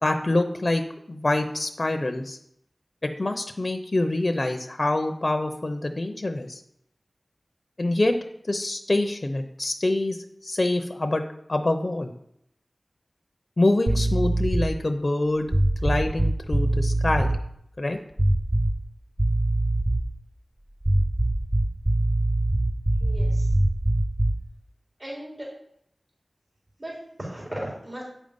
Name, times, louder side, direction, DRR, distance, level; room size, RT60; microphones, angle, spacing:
voice 1, 0.0-0.8 1.1-2.4 3.0-6.6 7.8-8.2 8.4-10.2 10.4-11.2 11.5-12.1 13.6-15.5 15.8-17.3 17.8-18.0, left 2 dB, 45° left, 6 dB, 0.7 m, -25 dB
sound 1, 13.9-14.8 15.5-17.4 18.2-18.9 19.2-20.2 20.8-24.5, right 1 dB, 20° right, 0.6 m, -23 dB
voice 2, 23.0-23.5 25.0-25.5 26.8-28.0, right 1 dB, 40° right, -3 dB, 3.8 m, -36 dB
8.7 x 5.3 x 5.2 m, 0.73 s
wide cardioid pair, 45°, 0 cm